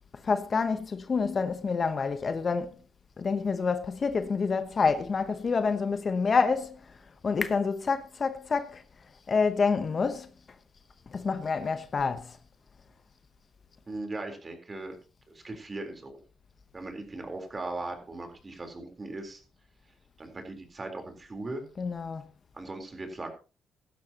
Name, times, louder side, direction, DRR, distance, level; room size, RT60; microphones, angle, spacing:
voice 1, 0.2-2.8 3.2-6.8 7.2-8.8 9.3-10.3 11.1-12.4 21.8-22.3, left 5 dB, 40° left, 1.0 m, -27 dB
voice 2, 13.9-14.9 15.3-16.2 16.7-19.4 20.2-21.7 22.5-23.3, right 2 dB, 25° right, 3.9 m, -38 dB
17.0 x 12.5 x 2.9 m
cardioid pair, 90°, 0 cm